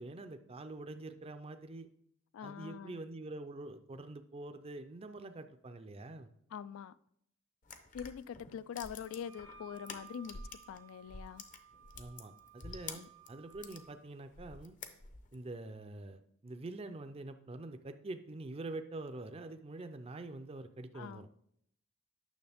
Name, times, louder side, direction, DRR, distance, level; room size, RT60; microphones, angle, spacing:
voice 1, 0.0-1.9 2.4-6.3 11.9-14.8 15.3-21.3, right 2 dB, 30° right, 0.4 m, -45 dB
voice 2, 2.3-3.0 6.5-7.0 7.9-10.4 10.7-11.4 12.9-13.1 20.9-21.2, left 8 dB, 75° left, 0.3 m, -44 dB
sound 1, 7.6-10.8 11.1-13.8 14.3-15.4, left 4 dB, 40° left, 0.6 m, -48 dB
Wind instrument woodwind instrument, 9.0-14.0, right 5 dB, 70° right, 1.1 m, -58 dB
9.4 x 6.3 x 3.5 m
head